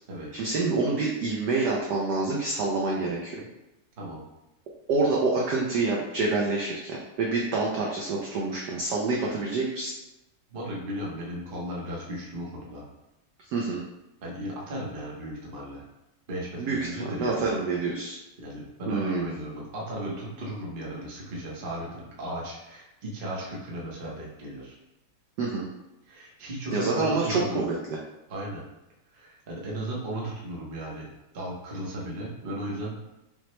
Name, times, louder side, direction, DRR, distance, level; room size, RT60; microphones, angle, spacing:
voice 1, 0.3-3.4 4.9-9.9 13.5-13.8 16.6-18.2 18.9-19.3 25.4-25.7 26.7-28.0, right 3 dB, 80° right, -3 dB, 0.9 m, -27 dB
voice 2, 10.5-12.9 14.2-15.8 16.3-17.5 18.4-24.7 26.1-27.7 28.3-28.6 29.1-31.1 31.3-32.9, right 1 dB, 50° right, -4 dB, 0.6 m, -35 dB
5.6 x 2.1 x 3.0 m, 0.95 s
omnidirectional pair, 2.4 m